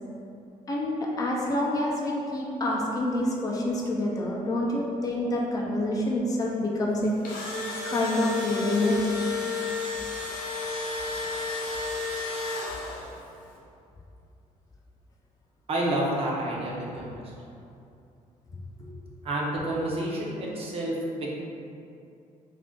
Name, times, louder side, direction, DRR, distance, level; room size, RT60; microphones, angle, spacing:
voice 1, 0.7-7.1 7.8-9.0, left 1 dB, 25° left, -2 dB, 0.4 m, -27 dB
Engine / Drill, 7.0-13.2, left 4 dB, 85° left, 0.7 m, -32 dB
voice 2, 15.7-17.3 19.2-21.3, right 1 dB, 45° right, -3 dB, 0.6 m, -29 dB
2.4 x 2.3 x 3.7 m, 2.6 s
cardioid pair, 135°, 14 cm